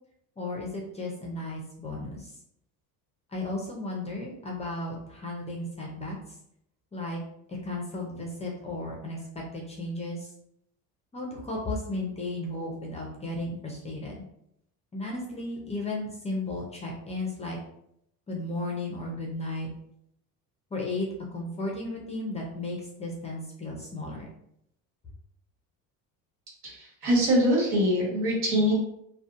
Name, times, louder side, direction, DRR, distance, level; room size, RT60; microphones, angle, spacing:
voice 1, 0.4-2.3 3.3-6.2 6.9-7.2 7.5-10.3 11.1-14.2 14.9-17.6 18.3-19.7 20.7-24.3, left 2 dB, 15° left, -1 dB, 0.4 m, -34 dB
voice 2, 26.6-28.7, equal, 75° right, -3 dB, 1.3 m, -24 dB
2.6 x 2.1 x 2.4 m, 0.74 s
cardioid pair, 120°, 40 cm